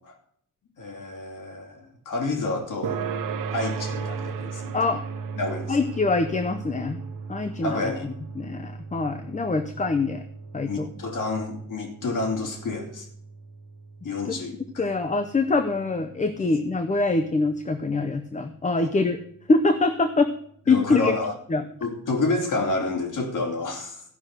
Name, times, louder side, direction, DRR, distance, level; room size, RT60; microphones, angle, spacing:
voice 1, 0.8-3.0 3.5-4.7 5.4-5.8 7.6-8.0 10.7-13.1 14.0-14.9 18.8-18.9 20.7-21.3 21.8-24.0, left 2 dB, 75° left, 2.7 m, -29 dB
sound 1, 2.8-17.7, right 5 dB, 85° right, 1.2 m, -37 dB
voice 2, 5.7-7.0 7.3-10.2 10.5-10.9 14.2-19.2 19.5-20.3 20.7-21.1 21.5-21.6, left 3 dB, 25° left, 0.6 m, -24 dB
14.5 x 6.0 x 6.5 m
wide cardioid pair, 155°, 32 cm